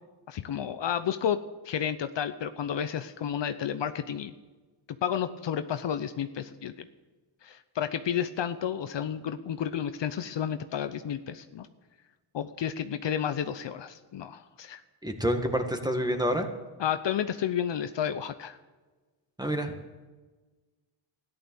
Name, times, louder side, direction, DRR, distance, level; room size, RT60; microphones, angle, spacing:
voice 1, 0.3-1.4 1.6-4.3 5.0-6.9 7.4-11.7 12.3-14.8 16.8-18.6, left 9 dB, 60° left, 10 dB, 0.8 m, -31 dB
voice 2, 15.0-16.5 19.4-19.7, equal, 10° right, 5 dB, 1.9 m, -28 dB
13.5 x 11.0 x 7.1 m, 1.3 s
cardioid pair, 75°, 50 cm